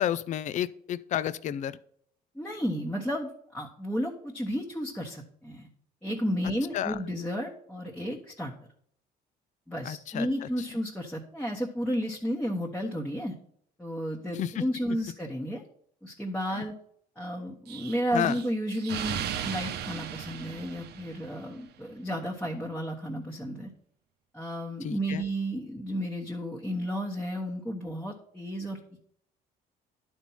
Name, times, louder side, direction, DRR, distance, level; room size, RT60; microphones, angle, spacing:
voice 1, 0.0-1.8 6.7-7.0 9.8-10.5 14.3-14.6 16.5-16.7 18.1-18.4 24.8-25.2, left 10 dB, 45° left, 16 dB, 0.4 m, -31 dB
voice 2, 2.3-5.7 6.0-8.5 9.7-13.3 13.8-15.6 16.0-16.7 17.2-23.7 24.3-29.0, equal, 5° left, -2 dB, 1.3 m, -32 dB
Explosion, 17.7-21.5, right 9 dB, 75° right, 0.9 m, -36 dB
11.0 x 4.5 x 5.6 m, 0.64 s
cardioid pair, 110°, 17 cm